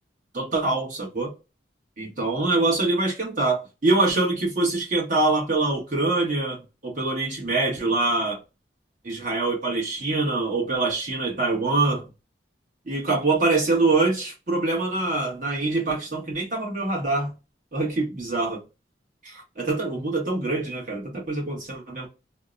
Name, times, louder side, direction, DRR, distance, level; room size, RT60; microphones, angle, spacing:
voice 1, 0.3-1.3 2.0-8.4 9.0-12.0 12.8-17.3 17.7-18.6 19.2-22.1, right 2 dB, 45° right, 1.2 m, -24 dB
2.8 x 2.0 x 2.4 m
head